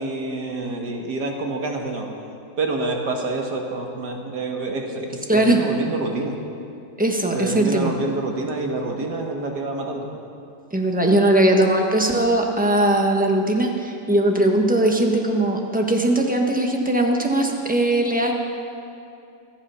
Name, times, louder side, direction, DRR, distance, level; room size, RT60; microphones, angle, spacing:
voice 1, 0.0-2.1 2.6-6.3 7.3-10.1, right 2 dB, 70° right, 1 dB, 2.2 m, -27 dB
voice 2, 5.3-5.6 7.0-7.9 10.7-18.3, right 1 dB, 5° right, 1 dB, 1.2 m, -19 dB
26.0 x 8.8 x 5.7 m, 2.5 s
omnidirectional pair, 1.9 m